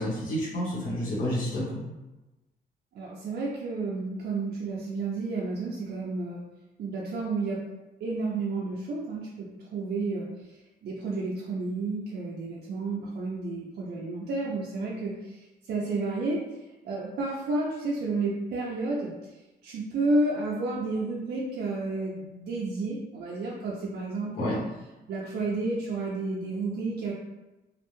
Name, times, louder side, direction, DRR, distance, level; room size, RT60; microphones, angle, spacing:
voice 1, 0.0-1.8 24.4-24.6, equal, 50° left, -8 dB, 0.9 m, -29 dB
voice 2, 2.9-6.4 6.8-7.6 8.0-16.4 16.8-24.5 25.1-27.1, right 3 dB, 65° right, -5 dB, 0.4 m, -31 dB
2.4 x 2.1 x 3.0 m, 1.1 s
wide cardioid pair, 150°, 18 cm